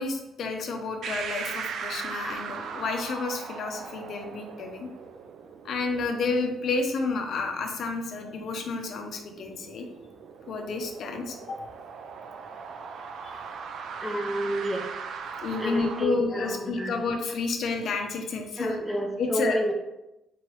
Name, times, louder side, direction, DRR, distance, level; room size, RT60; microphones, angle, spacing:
voice 1, 0.0-4.9 5.6-9.9 10.5-11.6 13.2-13.3 15.4-18.7 19.2-19.7, left 3 dB, 60° left, 4 dB, 0.5 m, -30 dB
sound 1, 1.0-16.0, right 6 dB, 65° right, 0.3 m, -39 dB
voice 2, 14.0-14.9 15.6-16.9 18.6-19.7, equal, ahead, 1 dB, 0.5 m, -29 dB
3.7 x 3.0 x 3.1 m, 0.93 s
cardioid pair, 130°, 0 cm